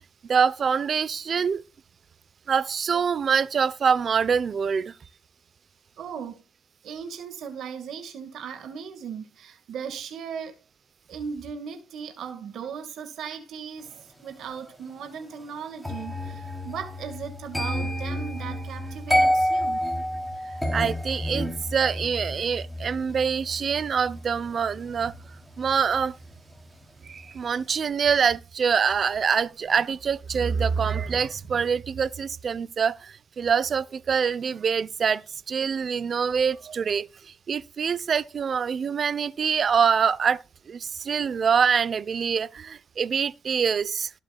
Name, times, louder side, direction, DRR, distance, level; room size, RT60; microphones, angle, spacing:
voice 1, 0.2-1.6 2.5-4.9 20.7-25.1 25.6-26.2 27.0-44.1, right 6 dB, 50° right, 0.9 m, -25 dB
voice 2, 6.0-6.4 6.8-10.6 11.1-19.8, right 7 dB, 70° right, 2.0 m, -37 dB
sound 1, 15.8-26.8 27.1-27.5, equal, ahead, 3.5 m, -30 dB
18.5 x 7.4 x 2.4 m
cardioid pair, 90°, 0 cm